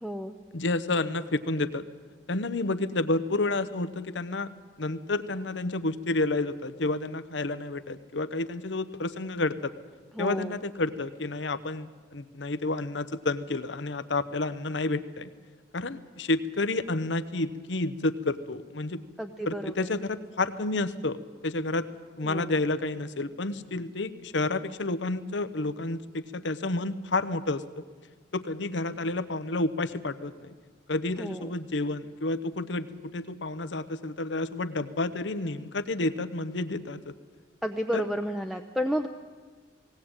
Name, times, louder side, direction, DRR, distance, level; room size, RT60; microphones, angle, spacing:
voice 1, 0.0-0.3 10.1-10.6 19.2-19.9 22.2-22.6 31.2-31.5 37.6-39.1, equal, ahead, 5 dB, 0.6 m, -31 dB
voice 2, 0.5-1.8 2.3-4.5 4.8-9.7 10.2-15.3 15.7-19.0 19.5-21.2 21.4-21.9 22.2-27.8 28.3-30.5 30.9-37.1 37.9-38.0, left 2 dB, 85° left, 13 dB, 0.9 m, -30 dB
18.5 x 18.0 x 8.9 m, 1.5 s
head